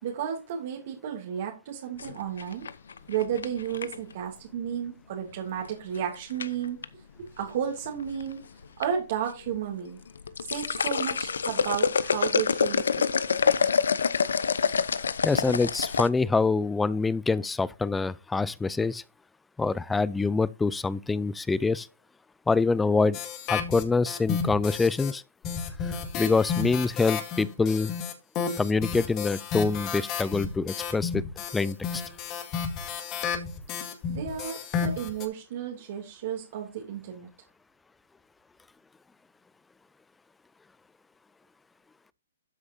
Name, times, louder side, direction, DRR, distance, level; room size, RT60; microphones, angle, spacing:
voice 1, 0.0-2.7 3.1-6.8 7.2-8.4 8.8-10.0 10.4-13.1 34.1-37.3, right 9 dB, 55° right, 2.8 m, -33 dB
sound 1, 2.0-4.1 5.6-6.0 6.4-6.8 7.8-8.3 8.6-8.8 9.3-9.4 10.1-16.1, left 6 dB, 85° left, 0.8 m, -26 dB
voice 2, 15.2-19.0 19.6-21.9 22.5-23.2 23.5-25.2 25.8-28.0 28.6-31.2 31.5-32.0, left 4 dB, 5° left, 0.4 m, -25 dB
sound 2, 23.1-25.1 25.4-35.3, left 6 dB, 30° left, 2.0 m, -32 dB
12.5 x 6.5 x 2.7 m
hypercardioid pair, 145°, 0 cm